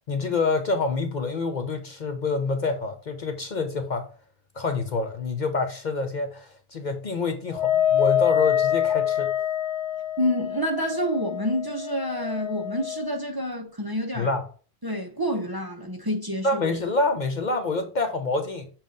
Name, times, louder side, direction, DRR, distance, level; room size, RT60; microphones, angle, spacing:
voice 1, 0.1-4.1 4.5-9.3 14.1-14.5 16.4-18.8, left 3 dB, 50° left, 0.7 m, -27 dB
Wind instrument woodwind instrument, 7.5-13.2, left 10 dB, 75° left, 1.0 m, -25 dB
voice 2, 10.2-14.3 14.8-16.6, equal, 25° right, 0.8 m, -28 dB
7.2 x 2.5 x 5.3 m
omnidirectional pair, 1.1 m